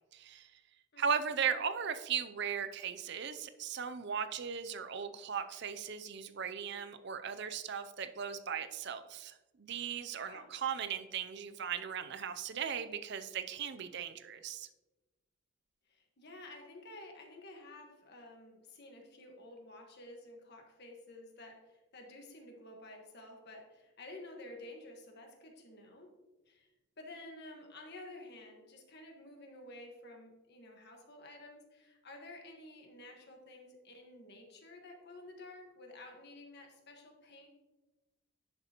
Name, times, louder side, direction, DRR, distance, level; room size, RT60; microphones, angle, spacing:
voice 1, 0.1-0.5 1.0-14.7, right 7 dB, 50° right, 10 dB, 0.5 m, -37 dB
voice 2, 0.9-1.3 10.2-10.5 15.9-26.1 26.5-26.7 27.0-37.5, left 2 dB, 50° left, 2 dB, 1.5 m, -52 dB
10.5 x 6.7 x 3.0 m, 1.1 s
head